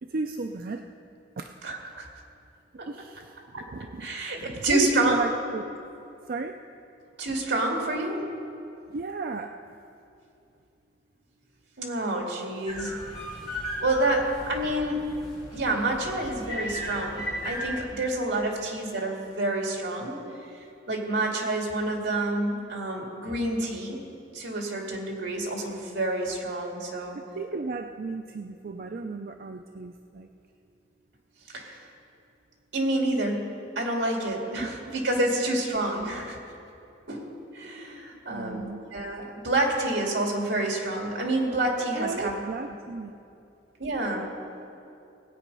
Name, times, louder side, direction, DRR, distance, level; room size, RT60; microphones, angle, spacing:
voice 1, 0.0-0.9 1.4-2.1 2.9-5.7 6.3-6.6 8.9-9.6 27.1-30.3 34.6-34.7 37.9-38.8 41.9-43.1, right 3 dB, 50° right, 6 dB, 0.4 m, -34 dB
voice 2, 1.6-2.1 2.8-2.9 3.5-3.7 4.0-5.2 7.2-8.2 11.8-13.0 13.8-15.0 15.5-20.2 20.9-24.0 24.3-27.2 31.5-31.8 32.7-33.5 33.8-36.4 37.1-37.3 37.5-42.3 43.8-44.3, right 2 dB, 75° right, 0 dB, 2.3 m, -28 dB
sound 1, 12.7-17.8, equal, 20° left, 3.9 m, -36 dB
19.0 x 8.4 x 5.4 m, 2.6 s
head